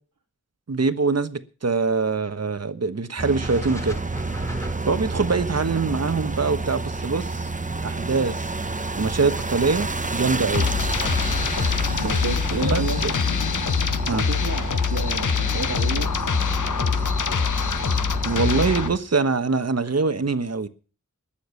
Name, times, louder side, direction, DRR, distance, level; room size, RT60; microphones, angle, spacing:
voice 1, 0.7-4.0 4.9-7.5 7.8-8.5 9.0-10.7 12.6-13.1 14.1-14.2 18.2-20.7, right 4 dB, 55° right, 11 dB, 1.3 m, -24 dB
sound 1, 3.2-19.0, right 3 dB, 25° right, 1.0 m, -30 dB
sound 2, 3.4-7.6, left 1 dB, 10° left, 1.8 m, -39 dB
sound 3, 10.5-18.9, left 6 dB, 75° left, 0.8 m, -24 dB
voice 2, 12.0-13.0 14.0-16.1, right 4 dB, 85° right, 1 dB, 2.3 m, -31 dB
20.5 x 7.2 x 6.9 m, 0.38 s
wide cardioid pair, 50°, 31 cm